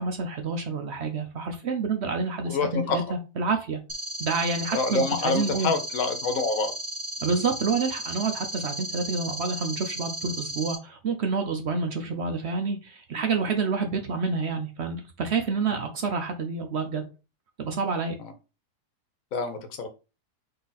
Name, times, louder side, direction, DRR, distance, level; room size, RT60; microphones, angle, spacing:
voice 1, 0.0-3.8 4.2-5.7 7.2-17.0 17.6-18.2, right 4 dB, 60° right, 0.7 m, -28 dB
voice 2, 2.5-3.0 4.7-6.7 15.7-15.8 18.2-18.3 19.3-19.9, left 3 dB, 60° left, 1.2 m, -27 dB
sound 1, 3.9-10.8, right 1 dB, 30° right, 0.6 m, -35 dB
4.0 x 2.9 x 4.0 m
omnidirectional pair, 1.7 m